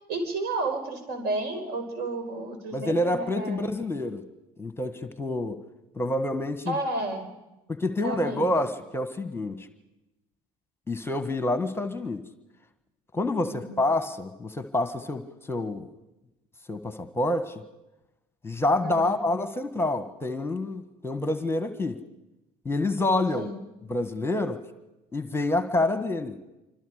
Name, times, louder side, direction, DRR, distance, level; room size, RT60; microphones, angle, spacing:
voice 1, 0.1-3.7 6.7-7.3 8.0-8.5 13.4-13.8 18.8-19.2 23.3-23.5, right 2 dB, 55° right, 7 dB, 5.0 m, -32 dB
voice 2, 2.7-4.2 4.6-5.6 5.9-6.8 7.7-9.7 10.9-12.2 13.1-15.9 16.7-17.6 18.4-22.0 22.6-23.5 23.9-24.6 25.1-26.4, left 2 dB, 10° left, 10 dB, 1.6 m, -27 dB
27.0 x 25.5 x 5.1 m, 0.99 s
figure-of-eight pair, 65°, 20 cm